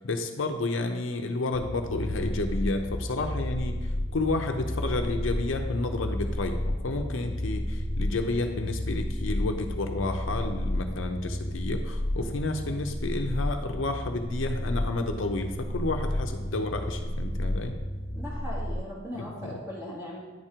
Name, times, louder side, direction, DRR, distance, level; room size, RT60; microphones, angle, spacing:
voice 1, 0.0-17.8 19.1-19.6, left 2 dB, 75° left, 5 dB, 0.7 m, -31 dB
sound 1, 1.5-18.7, left 1 dB, 35° left, 1.0 m, -32 dB
voice 2, 18.1-20.2, equal, 15° right, -6 dB, 2.2 m, -38 dB
9.6 x 4.5 x 4.9 m, 1.3 s
head